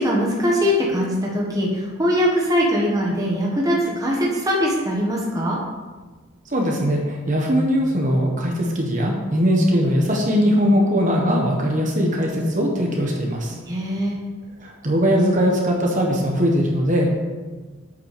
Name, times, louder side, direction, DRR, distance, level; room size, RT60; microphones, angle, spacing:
voice 1, 0.0-5.6 13.7-14.2, equal, 15° right, -3 dB, 1.4 m, -21 dB
voice 2, 6.5-13.5 14.6-17.1, equal, 35° right, 0 dB, 1.4 m, -20 dB
8.4 x 6.0 x 6.8 m, 1.3 s
head